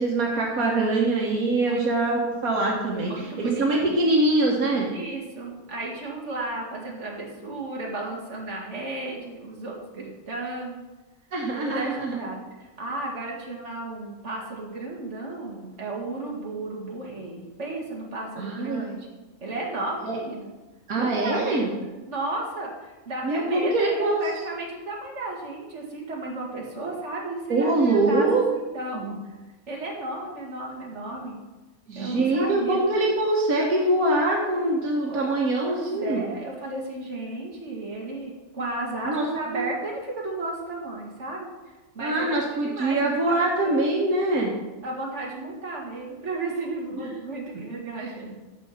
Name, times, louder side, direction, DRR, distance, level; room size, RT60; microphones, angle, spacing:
voice 1, 0.0-3.3 3.6-4.9 11.3-12.2 18.4-18.8 20.0-20.2 20.9-21.7 23.2-24.2 27.5-28.4 28.9-29.2 31.9-36.2 39.0-39.3 39.5-39.6 42.0-44.5 47.0-47.1 47.5-47.6, right 2 dB, 85° right, -2 dB, 1.9 m, -23 dB
voice 2, 3.1-4.0 4.9-10.8 11.6-19.1 19.4-20.5 20.9-21.7 22.1-29.3 29.7-31.4 32.0-32.8 35.1-35.3 35.6-41.5 41.9-43.4 43.6-43.8 44.8-48.4, right 2 dB, 55° right, -2 dB, 2.3 m, -34 dB
10.5 x 6.8 x 5.8 m, 1.2 s
omnidirectional pair, 1.5 m